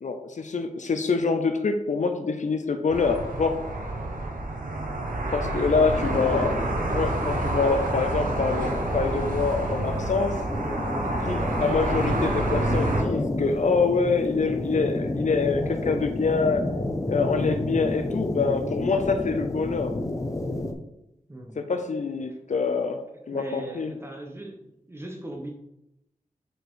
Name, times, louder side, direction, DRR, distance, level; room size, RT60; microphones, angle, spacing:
voice 1, 0.0-3.6 5.3-6.6 6.9-10.4 11.2-16.6 17.1-19.9 21.6-23.0 23.3-23.9, left 4 dB, 65° left, 6 dB, 0.6 m, -25 dB
sound 1, 2.9-13.0, right 2 dB, 90° right, 1.0 m, -28 dB
voice 2, 5.0-5.3 6.0-6.3 21.3-21.7 22.3-22.4 23.3-25.5, right 1 dB, 20° right, 2 dB, 1.2 m, -39 dB
sound 2, 5.9-20.7, left 1 dB, 25° left, 0.8 m, -31 dB
5.1 x 4.5 x 4.6 m, 0.86 s
wide cardioid pair, 75°, 14 cm